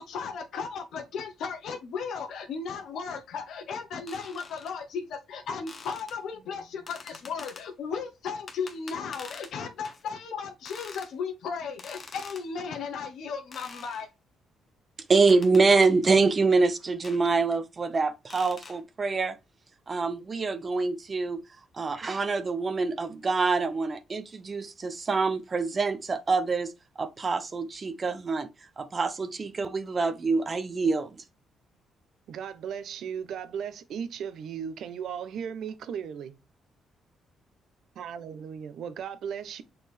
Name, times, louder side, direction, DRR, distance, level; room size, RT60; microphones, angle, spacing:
voice 1, 0.0-14.1, left 5 dB, 75° left, 1.2 m, -35 dB
sound 1, 4.1-4.7 5.7-6.2 6.9-7.7 8.5-9.5 9.8-10.0 10.7-11.1 11.8-12.5 13.5-14.1 15.2-16.2 17.0-17.2 18.3-18.8, left 4 dB, 40° left, 1.3 m, -45 dB
voice 2, 15.1-19.4 19.9-21.4 21.7-26.7 27.0-28.5 28.8-31.2, right 4 dB, 35° right, 0.9 m, -25 dB
voice 3, 32.3-36.4 38.0-39.6, right 7 dB, 70° right, 0.9 m, -36 dB
6.7 x 4.3 x 3.5 m
cardioid pair, 90°, 0 cm